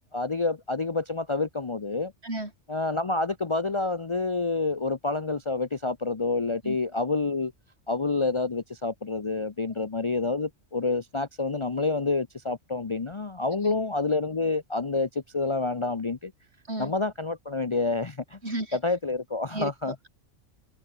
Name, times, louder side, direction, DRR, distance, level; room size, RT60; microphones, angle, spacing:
voice 1, 0.0-2.1 2.7-7.5 7.9-16.3 16.8-18.4 18.7-19.9, left 3 dB, 30° left, 0.7 m, -28 dB
voice 2, 18.4-18.8 19.5-20.1, right 1 dB, 60° right, 6.5 m, -33 dB
open air
omnidirectional pair, 1.2 m